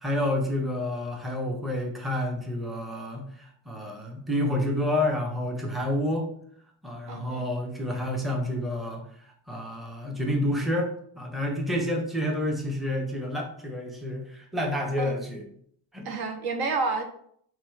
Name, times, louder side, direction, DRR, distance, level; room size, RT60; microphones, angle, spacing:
voice 1, 0.0-6.3 6.8-9.1 9.5-10.9 11.2-15.4 15.9-16.1, left 1 dB, ahead, 0 dB, 0.8 m, -29 dB
voice 2, 7.1-7.4 15.0-15.2 16.0-17.0, right 4 dB, 50° right, 6 dB, 0.8 m, -29 dB
4.4 x 2.4 x 4.5 m, 0.64 s
cardioid pair, 110°, 47 cm